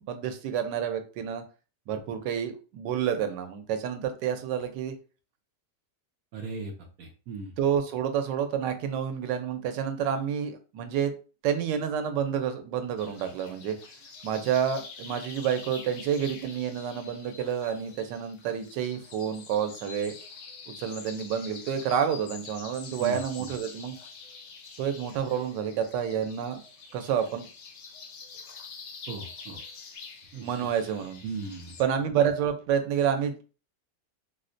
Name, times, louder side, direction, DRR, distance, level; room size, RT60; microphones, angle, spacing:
voice 1, 0.1-1.4 1.9-4.9 7.6-11.1 11.4-13.7 14.2-20.1 20.7-24.0 24.8-26.6 26.9-27.5 30.4-31.2 31.8-33.4, right 8 dB, 90° right, 7 dB, 1.3 m, -29 dB
voice 2, 6.3-6.7 7.0-7.5 23.0-23.5 29.1-29.6 30.3-30.7 31.2-31.7, right 4 dB, 65° right, 1 dB, 0.9 m, -37 dB
sound 1, 13.0-31.8, left 5 dB, 75° left, 0.6 m, -46 dB
4.4 x 2.1 x 2.5 m, 0.35 s
omnidirectional pair, 1.8 m